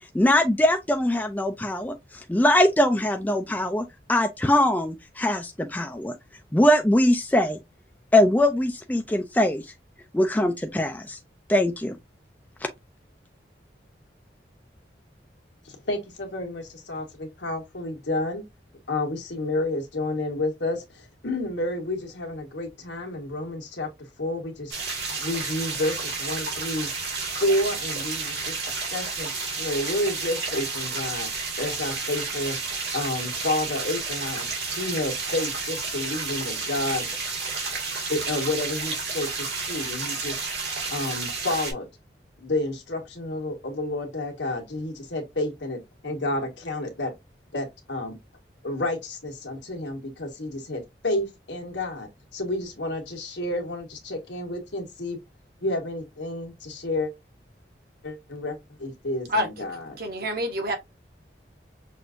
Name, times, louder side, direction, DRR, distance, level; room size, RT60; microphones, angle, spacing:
voice 1, 0.1-1.9 2.3-6.1 6.5-7.6 8.1-9.6 10.1-11.2 11.5-11.9, left 1 dB, 10° left, 0.3 m, -22 dB
voice 2, 15.6-18.4 18.9-23.9 24.2-24.8 25.2-26.9 27.4-29.3 29.6-31.3 31.6-32.6 32.9-34.5 34.8-37.1 38.1-40.4 40.9-41.9 42.4-47.1 47.5-48.2 48.6-55.2 55.6-57.1 58.0-60.0, left 1 dB, 85° left, 1.4 m, -30 dB
sound 1, 24.7-41.7, right 4 dB, 70° right, 2.1 m, -31 dB
voice 3, 60.0-60.8, equal, 55° right, 1.1 m, -26 dB
6.1 x 2.6 x 2.5 m
head